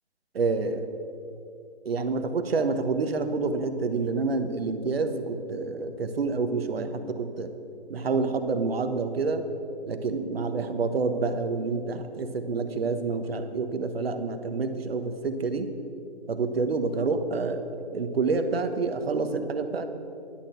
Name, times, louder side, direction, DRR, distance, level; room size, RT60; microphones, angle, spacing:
voice 1, 0.3-0.9 1.8-7.5 7.9-9.4 9.8-15.7 16.3-19.9, right 4 dB, 65° right, 8 dB, 1.2 m, -28 dB
11.5 x 6.5 x 7.8 m, 2.6 s
hypercardioid pair, 155°, 33 cm